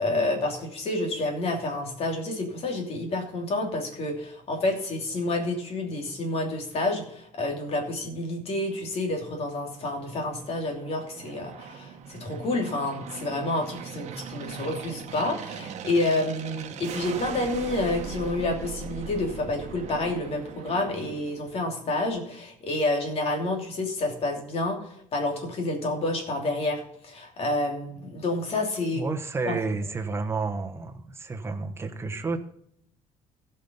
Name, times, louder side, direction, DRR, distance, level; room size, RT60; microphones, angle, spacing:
voice 1, 0.0-24.8 25.1-29.0 29.4-29.6, left 2 dB, 50° left, 2 dB, 3.0 m, -29 dB
Aircraft, 9.1-21.8, right 7 dB, 60° right, 1.2 m, -40 dB
voice 2, 28.9-32.4, right 4 dB, 20° right, 5 dB, 1.2 m, -31 dB
15.5 x 5.8 x 5.5 m, 0.70 s
cardioid pair, 145°, 13 cm